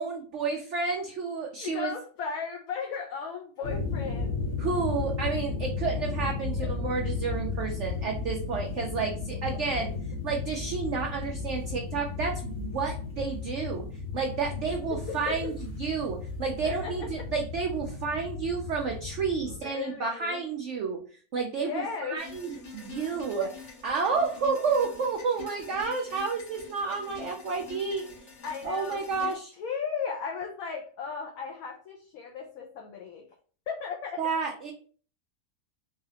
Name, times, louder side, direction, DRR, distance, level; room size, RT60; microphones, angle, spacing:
voice 1, 0.0-1.9 4.6-9.9 10.2-13.9 14.1-15.5 15.8-21.0 21.3-28.0 28.6-29.5 34.2-34.7, right 5 dB, 75° right, 1 dB, 0.6 m, -30 dB
voice 2, 1.5-4.4 6.5-6.9 9.8-9.9 14.9-15.5 16.6-17.1 19.5-20.4 21.6-22.2 28.4-33.3 33.7-34.2, left 6 dB, 70° left, 2 dB, 0.9 m, -36 dB
sound 1, 3.6-19.6, left 4 dB, 40° left, 1.0 m, -34 dB
sound 2, 22.2-29.3, left 4 dB, 85° left, 1.7 m, -46 dB
3.9 x 2.4 x 2.8 m, 0.42 s
omnidirectional pair, 1.8 m